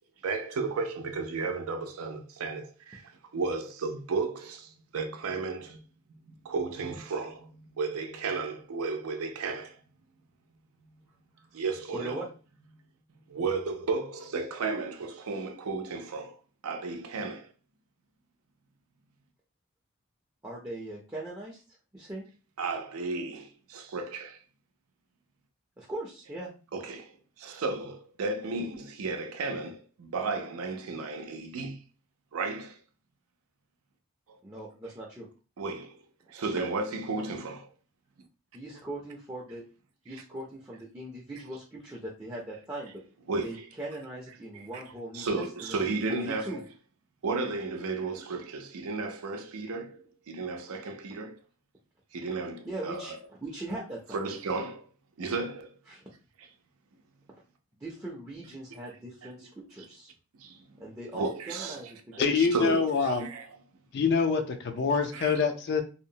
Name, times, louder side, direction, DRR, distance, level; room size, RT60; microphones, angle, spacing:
voice 1, 0.2-5.8 6.2-9.8 11.5-12.2 13.3-17.5 22.6-24.4 26.7-31.8 32.3-32.8 34.3-34.4 35.6-36.0 36.3-37.7 40.1-40.2 43.3-43.7 44.5-44.8 45.1-46.6 47.2-51.4 52.1-53.2 54.1-54.9 55.2-55.7 58.7-58.8 59.2-59.3 60.4-60.8 61.1-61.8 62.1-63.5 65.1-65.4, right 3 dB, 85° right, 0.5 m, -34 dB
voice 2, 11.9-12.3 20.4-21.6 21.9-22.3 25.8-26.5 34.4-35.3 37.1-37.2 38.5-39.6 40.0-43.0 43.4-46.6 52.6-53.1 53.4-54.2 55.9-56.0 57.8-60.1 60.8-62.8, right 1 dB, 15° right, 0.4 m, -40 dB
voice 3, 62.2-63.3 63.9-65.8, left 5 dB, 50° left, 0.4 m, -25 dB
2.7 x 2.0 x 2.7 m
head